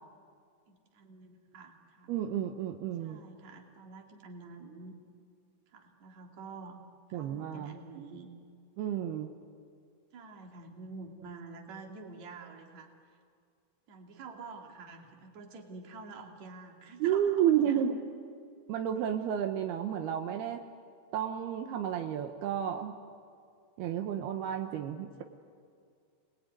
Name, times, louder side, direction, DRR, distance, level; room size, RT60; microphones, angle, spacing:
voice 1, 0.7-2.1 3.0-5.0 5.7-6.8 7.1-8.3 10.1-12.9 13.9-17.9, right 4 dB, 50° right, 2 dB, 3.6 m, -48 dB
voice 2, 2.1-3.2 7.1-7.7 8.8-9.3 17.0-18.0 18.7-20.6 21.1-22.9 23.8-25.2, right 9 dB, 80° right, 4 dB, 3.0 m, -31 dB
29.5 x 21.0 x 9.6 m, 2.2 s
omnidirectional pair, 4.6 m